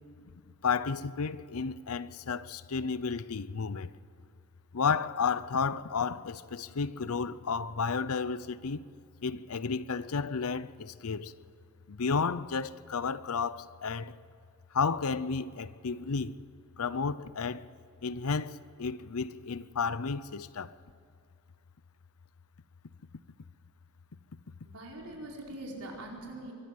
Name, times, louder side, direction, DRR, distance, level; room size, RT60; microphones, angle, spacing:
voice 1, 0.6-3.9 4.7-8.9 9.2-11.3 11.9-14.2 14.7-16.3 16.8-17.7 18.0-20.8, left 5 dB, 70° left, 0.6 m, -32 dB
voice 2, 24.6-26.5, right 1 dB, 85° right, 4.6 m, -43 dB
24.0 x 14.0 x 7.8 m
head